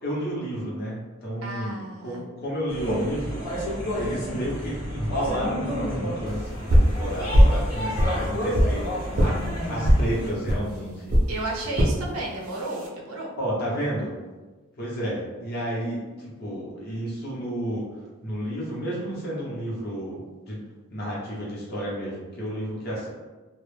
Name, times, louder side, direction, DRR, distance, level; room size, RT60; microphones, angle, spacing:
voice 1, 0.0-11.1 13.4-14.1 14.8-17.9 18.2-20.6 20.9-23.1, equal, 45° left, -5 dB, 0.8 m, -31 dB
voice 2, 1.4-2.2 11.3-13.3, right 2 dB, 85° right, -1 dB, 0.6 m, -33 dB
sound 1, 2.7-10.3, equal, 80° left, 1.0 m, -30 dB
sound 2, 6.7-7.0 7.3-7.6 7.9-8.7 9.1-9.3 9.8-10.0 10.5-10.6 11.1-11.3 11.8-12.0 12.5-12.9, equal, 40° right, 0.4 m, -18 dB
2.2 x 2.0 x 3.1 m, 1.3 s
head